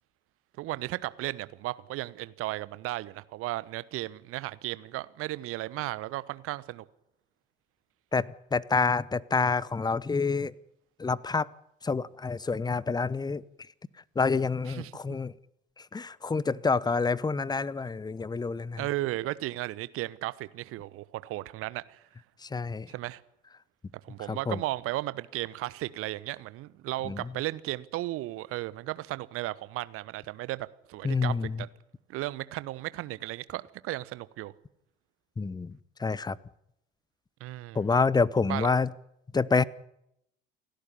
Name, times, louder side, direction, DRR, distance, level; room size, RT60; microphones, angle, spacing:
voice 1, 0.6-6.8 14.7-14.9 18.8-22.0 22.9-23.2 24.0-31.7 32.1-34.5 37.4-37.9 38.5-38.7, right 17 dB, 50° right, 1.1 m, -35 dB
voice 2, 8.1-10.5 11.0-11.5 11.8-13.4 14.2-15.3 15.9-18.8 22.4-22.9 24.3-24.6 27.0-27.2 31.0-31.6 35.4-36.4 37.7-38.9 39.3-39.6, left 4 dB, 15° left, 0.8 m, -27 dB
29.0 x 12.0 x 9.9 m
figure-of-eight pair, 60°, 30 cm